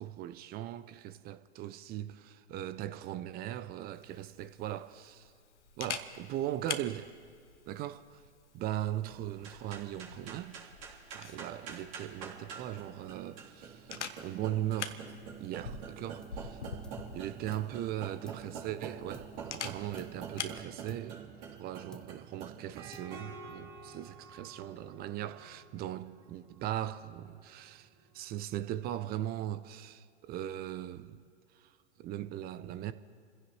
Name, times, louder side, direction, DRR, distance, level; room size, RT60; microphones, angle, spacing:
voice 1, 0.0-5.3 5.8-7.1 7.7-8.2 8.5-10.6 11.1-13.9 14.2-15.1 15.4-16.6 17.1-21.2 21.6-27.9 28.1-31.2 31.6-31.7 32.0-32.9, right 12 dB, 25° right, 0.6 m, -39 dB
Camera, 3.9-20.6, left 5 dB, 90° left, 1.1 m, -46 dB
sound 1, 9.3-28.9, right 6 dB, 50° right, 3.7 m, -47 dB
sound 2, 16.2-16.5 16.8-17.8 18.3-19.6 20.0-20.4 20.9-21.6 21.9-22.4 22.9-23.5, left 1 dB, ahead, 0.8 m, -55 dB
27.5 x 16.0 x 3.2 m
hypercardioid pair, 110°, 34 cm